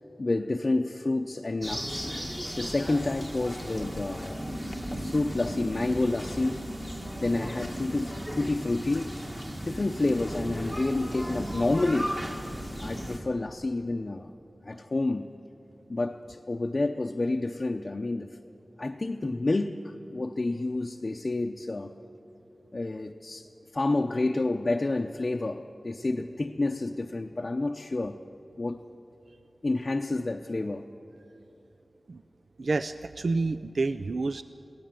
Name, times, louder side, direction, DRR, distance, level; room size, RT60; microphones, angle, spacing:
voice 1, 0.2-2.1 2.6-4.5 4.9-6.6 7.2-9.1 9.6-12.1 12.8-14.3 14.6-15.3 15.9-18.4 18.8-21.9 22.7-23.5 23.7-28.2 28.6-28.8 29.6-30.9, left 2 dB, 45° left, 3 dB, 0.6 m, -29 dB
sound 1, 1.6-13.2, equal, 15° right, 1.8 m, -36 dB
voice 2, 32.6-34.4, right 3 dB, 80° right, 12 dB, 0.4 m, -29 dB
23.0 x 16.5 x 7.6 m, 2.8 s
wide cardioid pair, 85°, 0 cm